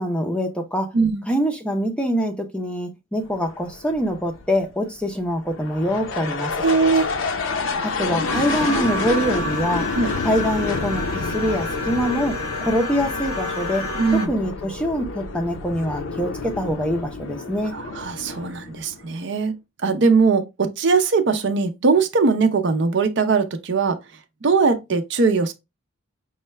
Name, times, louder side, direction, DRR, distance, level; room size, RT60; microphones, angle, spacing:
voice 1, 0.0-0.9 1.3-6.5 7.8-9.9 10.2-13.8 14.1-17.7, equal, 5° left, 0.5 m, -24 dB
sound 1, 3.2-19.2, left 3 dB, 65° left, 0.6 m, -29 dB
voice 2, 6.6-7.1 9.9-10.1 14.0-14.3 17.7-19.5 19.8-24.0 24.4-25.5, right 4 dB, 55° right, 0.5 m, -20 dB
sound 2, 8.2-14.3, left 2 dB, 90° left, 0.9 m, -29 dB
5.5 x 2.2 x 3.1 m
head